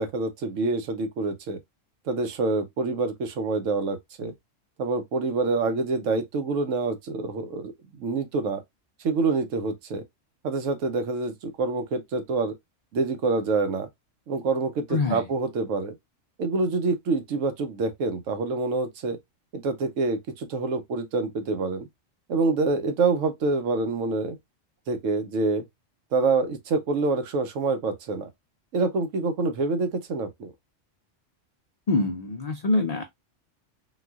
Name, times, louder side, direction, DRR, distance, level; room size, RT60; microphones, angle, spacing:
voice 1, 0.0-1.6 2.1-4.3 4.8-8.6 9.0-10.0 10.4-12.5 12.9-13.9 14.3-16.0 16.4-19.2 19.5-21.9 22.3-24.4 24.9-25.7 26.1-28.3 28.7-30.5, right 3 dB, 85° right, 1.1 m, -26 dB
voice 2, 14.9-15.2 31.9-33.0, left 2 dB, 90° left, 0.3 m, -24 dB
3.9 x 2.4 x 2.2 m
omnidirectional pair, 1.3 m